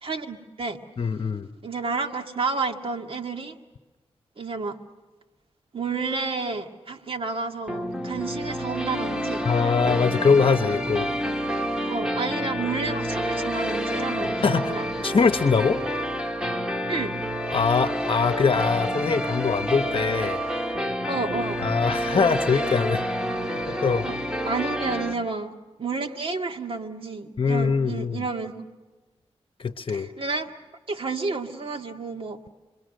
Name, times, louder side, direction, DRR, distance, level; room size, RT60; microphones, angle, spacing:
voice 1, 0.0-0.8 1.6-3.6 4.4-4.8 5.7-9.4 11.2-11.4 11.9-14.9 16.9-17.2 21.1-21.6 24.0-24.2 24.4-28.6 29.9-30.5 30.9-32.4, right 4 dB, 55° right, 5 dB, 1.8 m, -30 dB
voice 2, 1.0-1.5 9.4-11.1 14.4-14.7 15.0-15.8 17.5-20.4 21.6-23.0 23.7-24.1 27.4-28.2 29.6-30.1, left 5 dB, 55° left, 8 dB, 1.0 m, -22 dB
sound 1, 7.7-25.1, equal, 5° right, 1.8 m, -28 dB
28.0 x 22.5 x 6.5 m, 1.2 s
cardioid pair, 65°, 11 cm